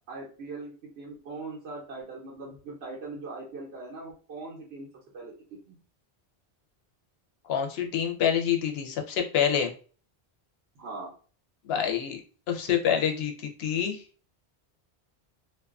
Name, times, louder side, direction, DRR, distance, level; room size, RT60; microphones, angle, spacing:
voice 1, 0.1-4.9 5.1-5.8 10.8-11.1, right 3 dB, 85° right, -3 dB, 1.0 m, -40 dB
voice 2, 7.5-9.7 11.7-12.2 12.5-14.0, left 8 dB, 85° left, 2 dB, 0.8 m, -27 dB
2.5 x 2.3 x 2.4 m, 0.39 s
omnidirectional pair, 1.0 m